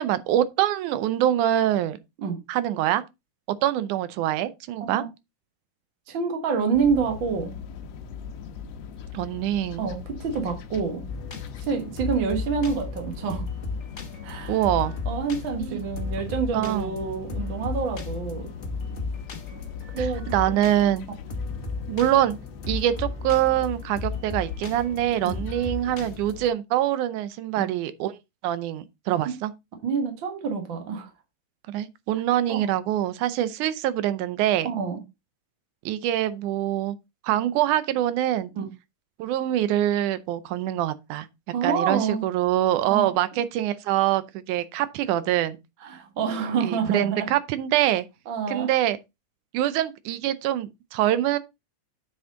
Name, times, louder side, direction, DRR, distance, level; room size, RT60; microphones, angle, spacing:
voice 1, 0.0-2.0 2.5-3.0 3.6-5.0 9.1-9.9 14.5-14.9 15.6-15.9 16.5-17.0 20.0-21.1 21.9-22.4 22.7-28.2 28.4-29.5 31.7-34.7 35.9-37.0 37.2-38.5 39.2-41.3 41.6-45.6 46.6-48.1 48.5-49.0 49.5-51.4, right 12 dB, 80° right, 2.1 m, -24 dB
voice 2, 6.1-7.5 9.8-11.0 11.6-13.5 14.2-14.6 15.0-18.5 19.9-20.2 20.5-20.6 25.2-25.4 27.5-27.7 29.2-29.4 29.8-31.1 32.5-32.7 34.6-35.0 38.6-38.7 41.5-42.2 42.9-43.1 45.8-47.3 48.3-48.7, right 5 dB, 50° right, 1.7 m, -27 dB
sound 1, 6.7-26.5, left 7 dB, 65° left, 1.7 m, -39 dB
sound 2, 11.1-26.5, left 3 dB, 50° left, 0.8 m, -35 dB
8.0 x 6.1 x 3.7 m
omnidirectional pair, 3.7 m